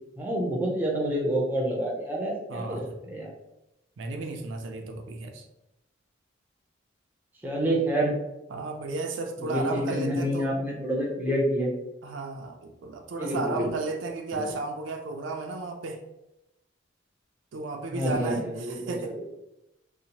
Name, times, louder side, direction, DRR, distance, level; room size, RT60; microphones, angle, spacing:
voice 1, 0.2-3.3 7.4-8.1 9.4-11.7 13.2-13.7 14.3-14.4 17.9-19.1, equal, 10° right, -2 dB, 0.5 m, -28 dB
voice 2, 2.5-3.0 4.0-5.5 8.5-10.5 12.0-16.0 17.5-19.2, right 3 dB, 70° right, 4 dB, 0.4 m, -34 dB
2.7 x 2.0 x 2.8 m, 0.89 s
head